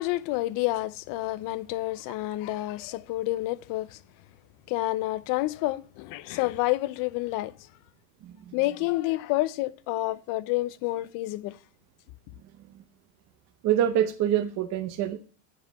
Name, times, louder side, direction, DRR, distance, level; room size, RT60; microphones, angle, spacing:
voice 1, 0.0-4.0 4.7-7.7 8.5-11.6, left 18 dB, 55° left, 0.6 m, -29 dB
voice 2, 8.2-8.5 12.7-12.8 13.6-15.2, right 10 dB, 45° right, 0.8 m, -26 dB
7.5 x 5.6 x 6.8 m
cardioid pair, 155°, 39 cm